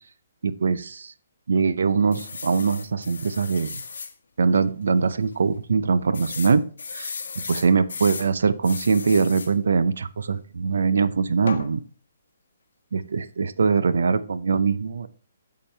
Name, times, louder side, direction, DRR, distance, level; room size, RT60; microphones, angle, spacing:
voice 1, 0.4-1.1 1.5-3.8 4.4-7.1 7.5-11.8 12.9-15.1, right 5 dB, 75° right, 16 dB, 0.7 m, -22 dB
sound 1, 2.1-4.1 4.7-4.8 5.0-5.1 6.1-8.3 8.6-9.5 11.5-11.7, left 5 dB, 85° left, 1.1 m, -35 dB
8.7 x 7.4 x 3.3 m, 0.41 s
hypercardioid pair, 170°, 0 cm